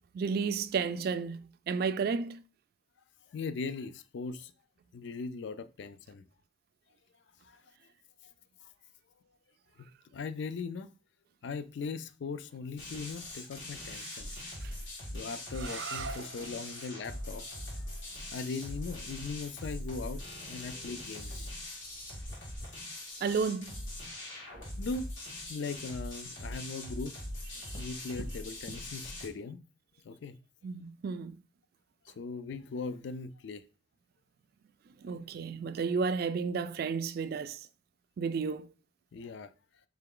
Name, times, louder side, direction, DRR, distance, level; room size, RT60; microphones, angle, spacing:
voice 1, 0.1-2.4 14.0-14.1 14.4-14.7 23.2-23.8 30.6-31.4 35.0-37.6 38.2-38.7, right 5 dB, 55° right, 0.3 m, -32 dB
voice 2, 3.3-4.5 4.9-6.2 7.4-7.6 8.6-8.7 9.8-10.9 11.4-14.3 15.1-17.5 18.3-21.5 24.8-25.1 25.5-27.2 27.7-29.6 30.0-30.4 32.2-33.6 39.1-39.5, left 4 dB, 65° left, 0.4 m, -39 dB
sound 1, 12.8-29.3, left 1 dB, 80° left, 1.9 m, -42 dB
sound 2, 15.5-21.2, right 4 dB, 80° right, 0.7 m, -46 dB
sound 3, 18.4-28.8, equal, 45° left, 1.0 m, -57 dB
3.7 x 3.3 x 3.7 m
head